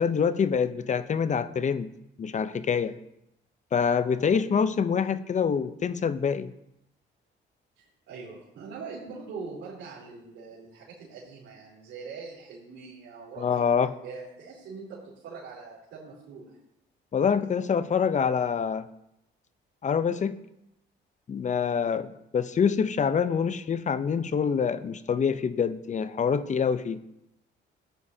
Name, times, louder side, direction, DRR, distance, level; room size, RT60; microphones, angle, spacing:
voice 1, 0.0-1.9 2.2-2.9 3.7-6.5 13.4-13.9 17.1-18.9 19.8-20.4 21.3-27.0, left 6 dB, 40° left, 14 dB, 0.7 m, -26 dB
voice 2, 7.8-13.7 14.0-16.6, right 4 dB, 80° right, -8 dB, 3.6 m, -42 dB
14.5 x 9.3 x 2.8 m, 0.83 s
cardioid pair, 90°, 20 cm